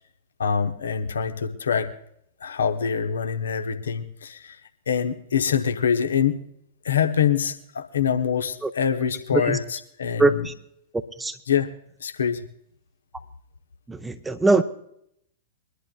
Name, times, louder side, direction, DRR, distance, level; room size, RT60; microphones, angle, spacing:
voice 1, 0.4-1.9 2.4-4.6 4.9-6.4 6.8-9.6 10.0-10.2 11.5-11.7 12.0-12.4, left 7 dB, 65° left, 6 dB, 0.9 m, -24 dB
voice 2, 10.2-10.5 10.9-11.4 13.9-14.6, right 2 dB, 10° right, 8 dB, 0.7 m, -22 dB
23.5 x 11.5 x 2.3 m, 0.71 s
figure-of-eight pair, 100°, 0 cm